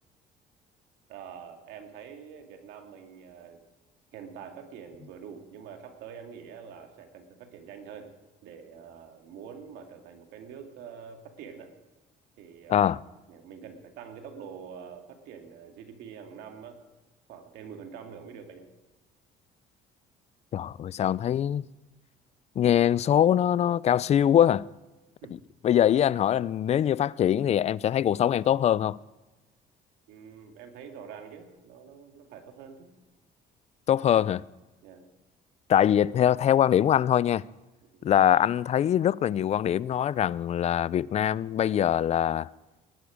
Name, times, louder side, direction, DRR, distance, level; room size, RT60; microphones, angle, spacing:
voice 1, 1.1-3.6 4.1-8.1 8.4-11.7 12.4-13.0 13.3-16.8 17.3-18.7 25.2-25.4 30.1-32.9 34.8-35.1 37.9-38.1, right 7 dB, 85° right, 2.1 m, -45 dB
voice 2, 12.7-13.0 20.5-21.7 22.6-24.7 25.6-29.0 33.9-34.4 35.7-37.4 38.0-42.5, left 10 dB, 40° left, 0.4 m, -23 dB
20.5 x 12.0 x 5.0 m
cardioid pair, 110°, 17 cm